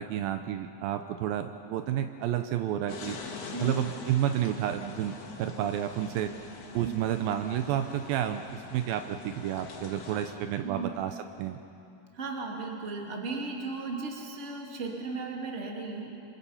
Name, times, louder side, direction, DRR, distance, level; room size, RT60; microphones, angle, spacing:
voice 1, 0.0-3.2 3.6-6.3 6.7-11.6, right 11 dB, 80° right, 8 dB, 2.4 m, -30 dB
sound 1, 2.9-10.3, left 4 dB, 80° left, 4.1 m, -44 dB
voice 2, 3.5-3.9 6.8-7.0 10.6-10.9 12.1-16.1, right 3 dB, 25° right, 0 dB, 2.0 m, -36 dB
27.0 x 26.0 x 5.7 m, 2.7 s
omnidirectional pair, 4.4 m